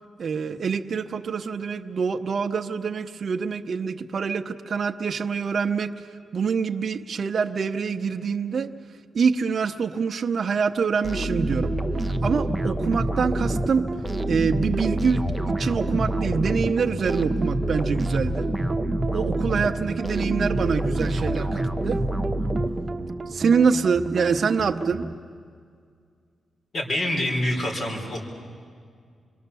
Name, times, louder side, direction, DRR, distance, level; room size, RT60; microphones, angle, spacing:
voice 1, 0.2-5.9 6.3-8.7 9.1-11.7 12.2-13.9 14.3-18.5 19.1-22.0 23.3-25.1, right 5 dB, 55° right, 4 dB, 0.8 m, -25 dB
sound 1, 11.0-23.2, right 1 dB, ahead, 0.8 m, -27 dB
sound 2, 11.4-25.1, right 3 dB, 25° right, 1.1 m, -33 dB
voice 2, 26.7-28.2, left 1 dB, 55° left, 2 dB, 4.4 m, -26 dB
26.5 x 23.0 x 6.9 m, 2.1 s
cardioid pair, 105°, 0 cm